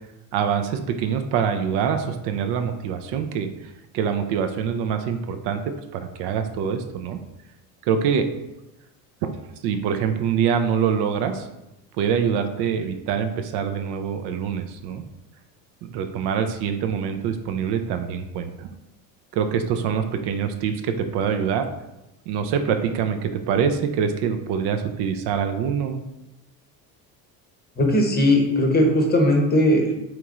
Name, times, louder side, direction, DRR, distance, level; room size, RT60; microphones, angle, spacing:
voice 1, 0.3-3.5 3.9-7.2 7.9-8.3 9.6-11.5 12.0-15.0 15.9-18.7 19.3-21.7 22.3-26.0, right 7 dB, 65° right, 7 dB, 0.6 m, -25 dB
voice 2, 27.8-29.9, left 1 dB, 20° left, 2 dB, 0.7 m, -18 dB
3.4 x 3.1 x 3.7 m, 0.95 s
supercardioid pair, 105°, 44 cm